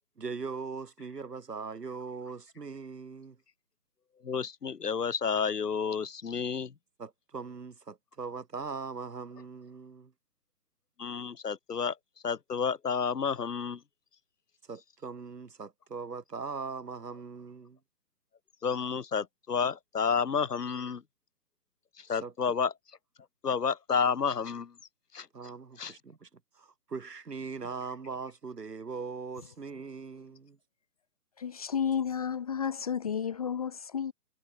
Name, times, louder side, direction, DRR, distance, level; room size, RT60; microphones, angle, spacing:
voice 1, 0.2-3.4 7.0-10.1 14.7-17.8 22.2-22.3 25.3-26.3 26.5-30.6, right 4 dB, 75° right, 7.3 m, -40 dB
voice 2, 4.2-6.7 11.0-12.0 12.2-13.8 18.6-21.0 22.0-22.7 23.4-24.7 25.1-25.3 25.8-25.9, left 6 dB, 75° left, 1.9 m, -30 dB
voice 3, 31.4-34.1, left 7 dB, 25° left, 1.0 m, -32 dB
hypercardioid pair, 160°, 48 cm